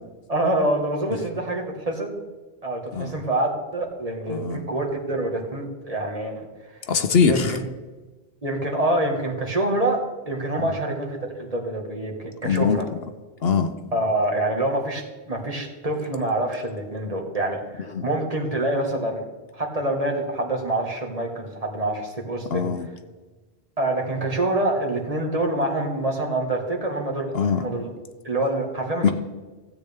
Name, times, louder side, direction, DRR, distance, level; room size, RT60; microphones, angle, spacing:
voice 1, 0.3-2.2 2.6-6.5 7.3-7.7 8.4-12.9 13.9-19.2 19.5-22.7 23.8-27.9 28.2-29.1, right 1 dB, 35° right, 1 dB, 1.6 m, -26 dB
voice 2, 4.3-4.6 6.9-7.6 12.4-12.8 13.4-13.7 17.9-18.1 22.5-22.9 27.3-27.6 29.0-29.1, left 6 dB, 65° left, 9 dB, 0.9 m, -22 dB
15.5 x 8.5 x 3.5 m, 1.2 s
omnidirectional pair, 1.1 m